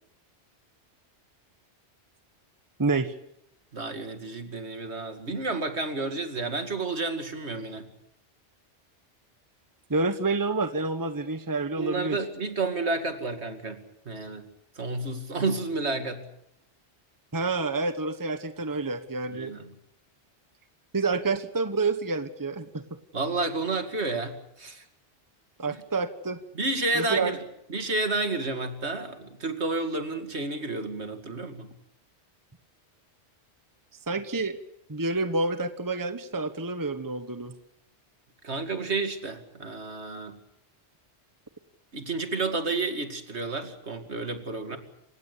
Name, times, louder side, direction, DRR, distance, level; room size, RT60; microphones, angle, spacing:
voice 1, 2.8-3.1 9.9-12.2 17.3-19.6 20.9-22.8 25.6-26.4 26.9-27.4 34.1-34.6 34.9-37.5, right 3 dB, 20° right, 10 dB, 1.1 m, -28 dB
voice 2, 3.7-7.9 11.8-14.5 14.8-16.2 19.3-19.7 23.1-24.8 25.7-25.8 26.5-27.4 27.7-31.7 38.4-40.4 41.9-44.8, right 3 dB, 70° right, 7 dB, 2.6 m, -31 dB
27.5 x 16.5 x 8.3 m, 0.80 s
omnidirectional pair, 1.2 m